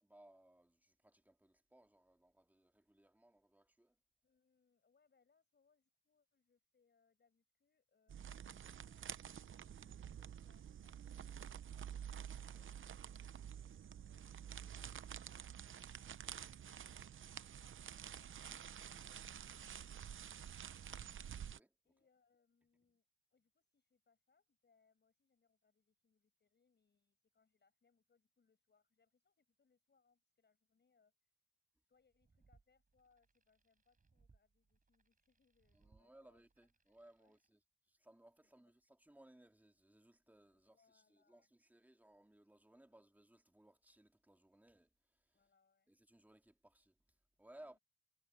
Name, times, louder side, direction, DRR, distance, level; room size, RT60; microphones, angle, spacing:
voice 1, 0.0-4.0 12.3-12.7 13.5-13.6 21.3-21.7 35.7-37.6 37.9-45.4 45.9-47.0 47.4-47.8, right 1 dB, 5° right, 2.3 m, -65 dB
voice 2, 4.2-9.1 9.5-12.4 13.6-21.0 21.8-23.0 23.3-31.3 31.8-37.4 38.4-38.8 40.5-41.6 42.8-43.0 45.3-46.0 47.6-47.8, left 5 dB, 35° left, 6.9 m, -80 dB
sound 1, 8.1-21.6, right 9 dB, 40° right, 0.8 m, -50 dB
sound 2, 32.0-37.5, right 4 dB, 25° right, 5.2 m, -74 dB
cardioid pair, 90°, 30 cm